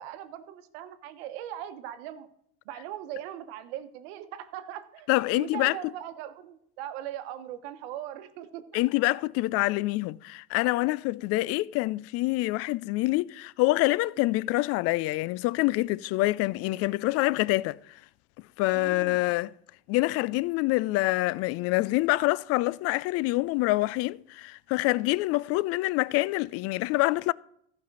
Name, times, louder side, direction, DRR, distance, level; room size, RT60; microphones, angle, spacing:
voice 1, 0.0-2.3 2.7-5.1 5.4-8.8 18.7-19.2, right 11 dB, 65° right, 1.1 m, -40 dB
voice 2, 5.1-5.8 8.7-17.8 18.6-19.5 19.9-27.3, left 20 dB, 45° left, 0.4 m, -26 dB
14.0 x 5.3 x 6.1 m
hypercardioid pair, 90°, 33 cm